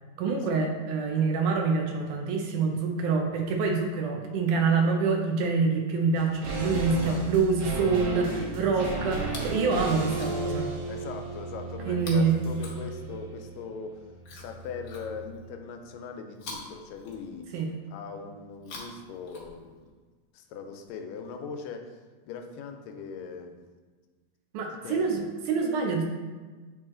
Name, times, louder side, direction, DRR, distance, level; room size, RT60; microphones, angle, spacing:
voice 1, 0.2-10.7 11.9-12.4 17.5-17.7 24.5-26.0, right 4 dB, 75° right, 2 dB, 2.0 m, -26 dB
sound 1, 6.1-15.5 15.8-15.9, right 3 dB, 60° right, 1.8 m, -35 dB
voice 2, 6.9-7.3 8.2-9.0 10.9-17.5 17.9-19.9 20.3-23.6 24.8-25.3, left 5 dB, 85° left, 5 dB, 2.2 m, -40 dB
Chewing mastication, 9.1-9.6 10.0-10.6 11.9-13.3 14.2-15.5 16.3-17.6 18.5-19.9 20.8-20.9, left 3 dB, 60° left, 1.4 m, -46 dB
8.8 x 3.1 x 3.7 m, 1.4 s
omnidirectional pair, 3.9 m